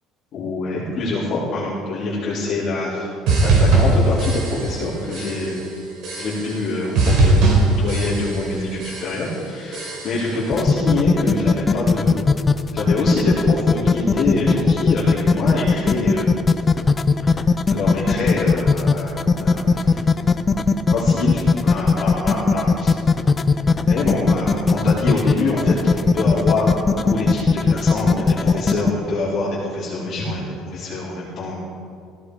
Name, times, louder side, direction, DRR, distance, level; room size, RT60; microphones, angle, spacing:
voice 1, 0.3-3.1 3.4-5.6 6.2-7.4 7.8-12.2 12.7-16.3 17.7-19.9 20.9-22.9 23.9-26.7 27.0-30.4 30.7-31.6, left 2 dB, 40° left, -9 dB, 4.4 m, -25 dB
sound 1, 3.3-4.8 5.1-5.6 6.0-6.7 6.9-8.5 8.8-9.3 9.7-10.4, right 2 dB, 60° right, 5.4 m, -19 dB
sound 2, 10.5-28.9, left 4 dB, 20° left, 0.6 m, -17 dB
17.5 x 16.0 x 5.0 m, 2.3 s
cardioid pair, 155°, 0 cm